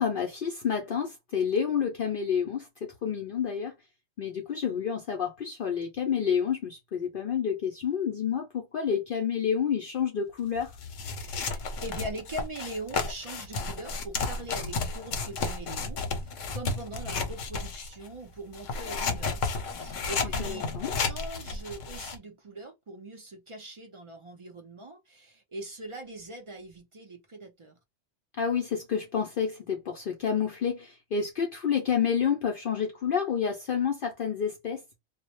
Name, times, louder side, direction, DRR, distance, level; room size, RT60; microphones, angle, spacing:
voice 1, 0.0-2.7 3.0-3.7 4.2-10.7 20.2-20.9 28.4-34.8, left 7 dB, 60° left, 0.6 m, -29 dB
sound 1, 10.6-18.1 18.5-22.2, left 4 dB, 85° left, 1.0 m, -32 dB
voice 2, 11.2-20.6 20.9-27.8, right 1 dB, 55° right, 0.3 m, -42 dB
2.2 x 2.0 x 2.9 m
omnidirectional pair, 1.3 m